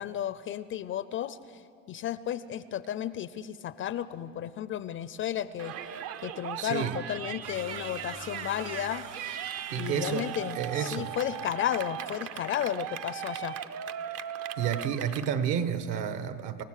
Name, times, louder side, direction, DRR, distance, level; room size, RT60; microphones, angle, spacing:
voice 1, 0.0-1.6 1.9-5.7 6.2-9.1 9.8-13.6, left 11 dB, 30° left, 15 dB, 0.4 m, -33 dB
Yell, 5.6-15.3, right 9 dB, 40° right, 0.6 m, -38 dB
voice 2, 6.6-7.0 9.7-11.1 14.6-16.6, right 8 dB, 60° right, 10 dB, 1.4 m, -31 dB
sound 1, 7.4-11.6, right 5 dB, 85° right, 2.6 m, -46 dB
26.5 x 15.5 x 6.6 m, 2.5 s
supercardioid pair, 120°, 40 cm